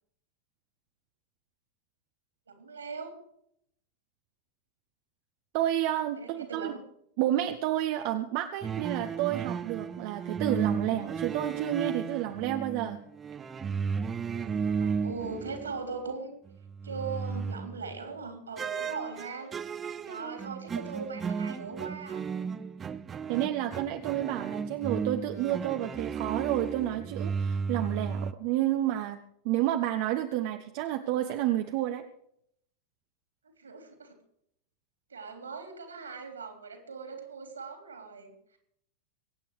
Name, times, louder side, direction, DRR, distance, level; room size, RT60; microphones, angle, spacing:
voice 1, 2.5-3.2 6.1-6.8 14.2-16.3 16.8-19.5 19.8-22.3 33.6-34.2 35.1-38.6, right 4 dB, 75° right, 6 dB, 3.5 m, -40 dB
voice 2, 5.5-6.7 7.2-13.0 23.3-29.2 29.4-32.0, right 13 dB, 45° right, 6 dB, 1.0 m, -30 dB
sound 1, 8.6-16.1 16.5-18.0 18.6-28.3, right 6 dB, 20° right, 0.8 m, -34 dB
23.5 x 9.0 x 4.8 m, 0.71 s
figure-of-eight pair, 90°, 0 cm